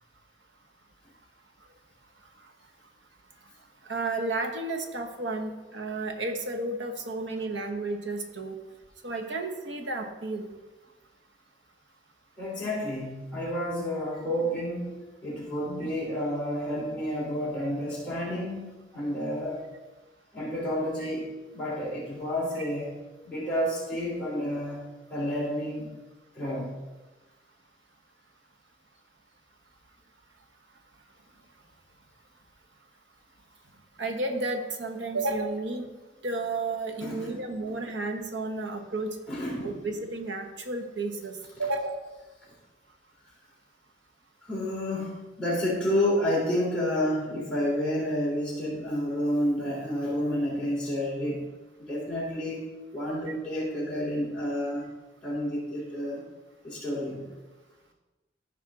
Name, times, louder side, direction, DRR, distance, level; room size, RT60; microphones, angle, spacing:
voice 1, 3.8-8.6 9.0-10.5 22.6-22.7 34.0-35.9 36.2-39.1 39.6-42.0, right 2 dB, 80° right, 3 dB, 1.2 m, -32 dB
voice 2, 12.4-15.0 15.2-19.6 20.3-21.3 21.5-25.9 26.3-26.7 37.0-37.7 39.3-39.8 41.6-41.7 44.4-51.4 51.8-52.6 52.9-54.9 55.2-56.3 56.6-57.3, equal, 5° left, -8 dB, 3.6 m, -30 dB
14.5 x 5.5 x 3.8 m, 1.2 s
head